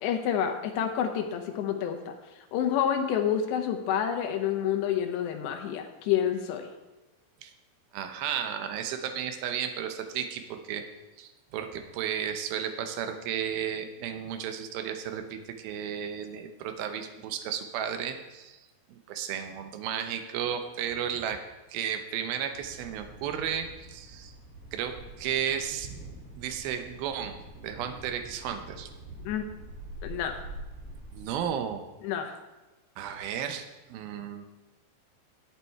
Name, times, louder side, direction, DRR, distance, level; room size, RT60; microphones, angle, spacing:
voice 1, 0.0-6.7 29.2-29.5 30.0-30.4 32.0-32.3, left 9 dB, 75° left, 4 dB, 3.1 m, -29 dB
voice 2, 7.9-10.8 11.2-18.6 18.9-21.4 21.7-24.4 24.7-25.9 26.4-28.9 31.1-31.8 33.0-34.5, right 8 dB, 80° right, 7 dB, 2.2 m, -33 dB
Thunder, 22.5-31.5, right 2 dB, 45° right, 3.2 m, -45 dB
11.5 x 8.6 x 4.6 m, 1.1 s
omnidirectional pair, 5.3 m